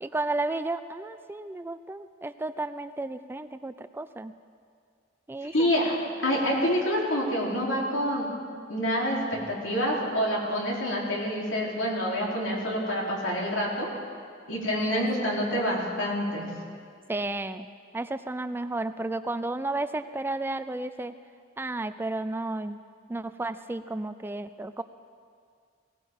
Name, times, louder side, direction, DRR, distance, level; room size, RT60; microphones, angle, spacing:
voice 1, 0.0-4.3 5.3-5.7 14.9-15.1 15.5-15.6 17.1-17.7 17.9-21.1 21.6-22.8 23.1-24.8, right 2 dB, 10° right, 12 dB, 0.3 m, -32 dB
voice 2, 5.4-5.9 6.2-8.3 8.7-13.9 14.5-16.5, equal, 85° left, -3 dB, 3.3 m, -27 dB
19.5 x 17.0 x 3.6 m, 2.2 s
head